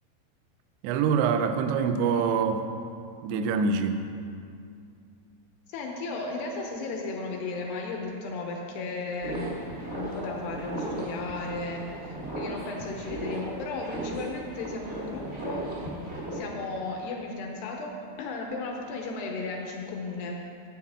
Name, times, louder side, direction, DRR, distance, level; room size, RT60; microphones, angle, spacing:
voice 1, 0.8-2.7 3.2-4.0, right 5 dB, 85° right, 7 dB, 2.3 m, -25 dB
voice 2, 5.7-15.9 16.3-20.4, left 3 dB, 80° left, 1 dB, 2.5 m, -35 dB
sound 1, 9.2-16.3, right 1 dB, 45° right, 0.8 m, -36 dB
12.5 x 8.6 x 3.6 m, 2.4 s
omnidirectional pair, 5.5 m